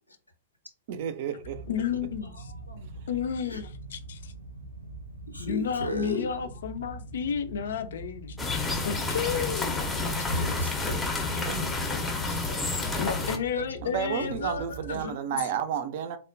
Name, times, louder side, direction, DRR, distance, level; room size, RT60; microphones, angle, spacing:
voice 1, 0.9-1.7 11.2-11.8 13.8-16.2, right 8 dB, 45° right, 0.4 m, -32 dB
sound 1, 1.4-15.1, right 2 dB, 90° right, 0.6 m, -43 dB
voice 2, 1.7-2.3 3.1-4.2 5.4-9.8 12.9-15.2, left 7 dB, 55° left, 0.4 m, -32 dB
voice 3, 2.2-2.9 3.4-3.6 5.3-6.6 10.3-10.7 14.3-14.4, left 1 dB, 85° left, 0.7 m, -34 dB
sound 2, 8.4-13.4, left 3 dB, 10° left, 0.6 m, -30 dB
3.4 x 2.1 x 2.5 m
figure-of-eight pair, 105°, 0 cm